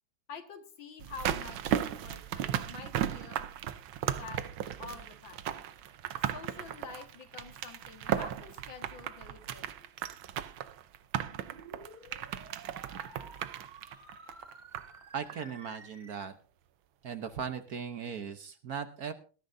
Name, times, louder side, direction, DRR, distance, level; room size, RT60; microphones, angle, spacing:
voice 1, 0.3-3.5 4.1-4.4 4.8-5.6 6.2-9.9, left 5 dB, 70° left, 6 dB, 2.5 m, -47 dB
sound 1, 1.0-15.0 15.3-15.4, right 10 dB, 80° right, 1.6 m, -36 dB
sound 2, 11.1-16.1, right 2 dB, 20° right, 2.0 m, -52 dB
voice 2, 15.1-16.3 17.0-19.1, right 7 dB, 55° right, 9 dB, 1.3 m, -38 dB
19.5 x 14.0 x 2.7 m, 0.37 s
omnidirectional pair, 2.2 m